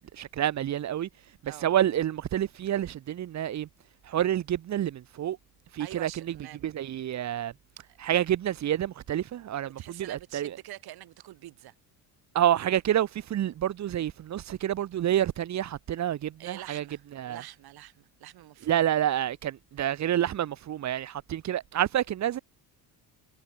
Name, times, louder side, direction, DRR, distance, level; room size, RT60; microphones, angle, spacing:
voice 1, 0.1-1.1 1.4-3.7 4.1-5.4 5.7-6.3 6.6-7.5 8.0-10.5 12.3-16.8 17.1-17.4 18.7-22.4, right 11 dB, 40° right, 1.4 m, -28 dB
voice 2, 5.8-6.9 7.9-8.0 9.7-11.7 16.4-18.9, right 14 dB, 60° right, 4.6 m, -45 dB
cardioid pair, 155°, 42 cm